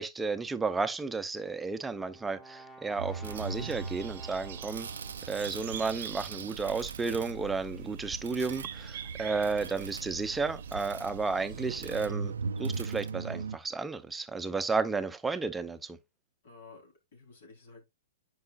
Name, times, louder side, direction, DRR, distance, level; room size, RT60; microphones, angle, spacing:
voice 1, 0.0-4.9 5.3-12.3 12.6-16.0, right 4 dB, 10° right, 0.6 m, -33 dB
Brass instrument, 1.5-5.5, right 1 dB, 10° left, 1.2 m, -52 dB
sound 1, 3.0-13.6, right 5 dB, 85° right, 0.4 m, -39 dB
sound 2, 3.2-12.1, right 9 dB, 65° right, 0.8 m, -45 dB
voice 2, 16.4-17.9, left 4 dB, 65° left, 3.6 m, -53 dB
9.5 x 4.8 x 2.5 m
hypercardioid pair, 130°, 0 cm